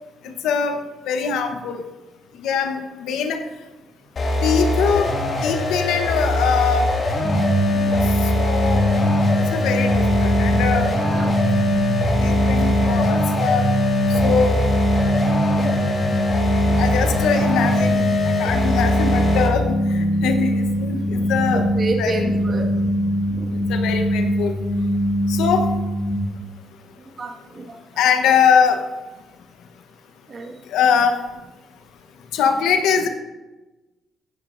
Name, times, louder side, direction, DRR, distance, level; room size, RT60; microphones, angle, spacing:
voice 1, 0.4-0.7 1.1-1.8 2.4-3.4 4.4-5.1 5.4-6.9 8.3-8.8 9.5-10.9 12.2-13.7 14.2-14.6 16.8-18.0 18.2-21.6 22.0-22.3 23.7-24.5 25.3-25.7 28.0-28.8 30.7-31.2 32.3-33.1, left 6 dB, 90° left, 6 dB, 1.0 m, -22 dB
sound 1, 4.2-19.6, left 1 dB, 45° left, 2.1 m, -23 dB
sound 2, 7.2-26.2, equal, 15° right, 2.0 m, -22 dB
voice 2, 7.9-8.4 10.9-11.3 15.6-15.7 21.5-22.9 27.2-27.8 30.3-30.5, right 3 dB, 45° right, 2 dB, 1.6 m, -30 dB
15.5 x 10.0 x 2.6 m, 1.1 s
cardioid pair, 90°, 0 cm